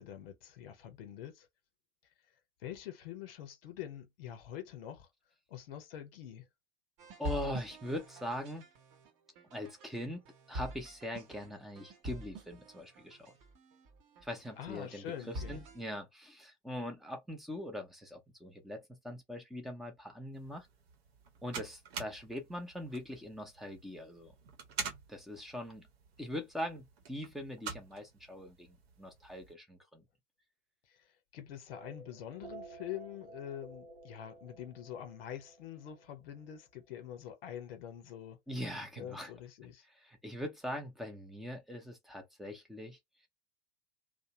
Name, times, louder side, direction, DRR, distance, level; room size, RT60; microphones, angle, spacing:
voice 1, 0.0-1.5 2.6-5.1 5.5-6.4 14.6-15.6 31.3-38.4 39.0-39.8, left 10 dB, 55° left, 1.0 m, -45 dB
sound 1, 7.0-15.8, equal, 35° right, 1.0 m, -46 dB
voice 2, 7.2-8.6 9.5-10.2 10.5-13.3 14.2-20.7 21.4-24.3 25.1-25.9 26.2-30.0 38.5-39.3 39.9-43.0, equal, ahead, 0.6 m, -42 dB
sound 2, 20.3-29.5, right 6 dB, 60° right, 0.9 m, -47 dB
sound 3, 31.7-36.6, right 3 dB, 90° right, 0.9 m, -53 dB
2.7 x 2.1 x 2.9 m
figure-of-eight pair, 95°, 35 cm